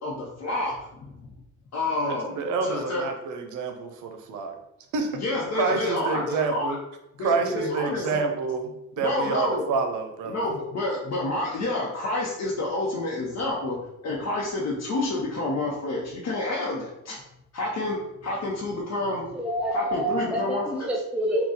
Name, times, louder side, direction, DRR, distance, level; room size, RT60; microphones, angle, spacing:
voice 1, 0.0-1.2 1.7-3.1 5.1-6.8 7.2-8.3 9.0-9.7 10.3-13.8 14.0-17.2 17.5-19.4 19.7-20.9, left 2 dB, 60° left, -4 dB, 0.9 m, -29 dB
voice 2, 2.0-4.5 4.9-5.2 5.5-6.8 7.2-8.7 9.0-10.4, right 4 dB, 80° right, 5 dB, 0.7 m, -28 dB
voice 3, 19.3-21.5, right 1 dB, 5° right, -2 dB, 0.5 m, -27 dB
3.7 x 2.3 x 4.0 m, 0.84 s
cardioid pair, 90°, 30 cm